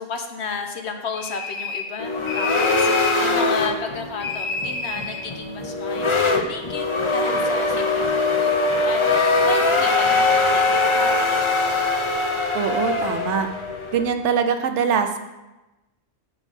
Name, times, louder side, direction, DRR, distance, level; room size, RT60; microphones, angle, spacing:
voice 1, 0.0-11.4, left 4 dB, 65° left, 5 dB, 1.0 m, -33 dB
sound 1, 1.1-2.0 2.3-3.2 4.2-5.3, left 3 dB, 80° left, 1.4 m, -29 dB
sound 2, 2.0-14.1, left 3 dB, 35° left, 0.5 m, -22 dB
voice 2, 12.5-13.5 13.9-15.2, right 7 dB, 70° right, 7 dB, 0.9 m, -22 dB
7.1 x 4.8 x 5.3 m, 1.0 s
omnidirectional pair, 1.3 m